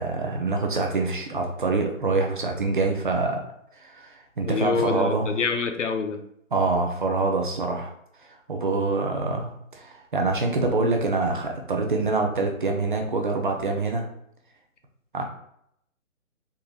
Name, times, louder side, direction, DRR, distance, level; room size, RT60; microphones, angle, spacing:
voice 1, 0.0-3.4 3.8-5.3 6.5-7.9 8.5-14.1 15.1-15.2, right 3 dB, 40° right, 2 dB, 0.5 m, -25 dB
voice 2, 4.4-6.2, left 5 dB, 65° left, 6 dB, 0.6 m, -26 dB
3.7 x 2.8 x 2.3 m, 0.72 s
figure-of-eight pair, 150°, 40 cm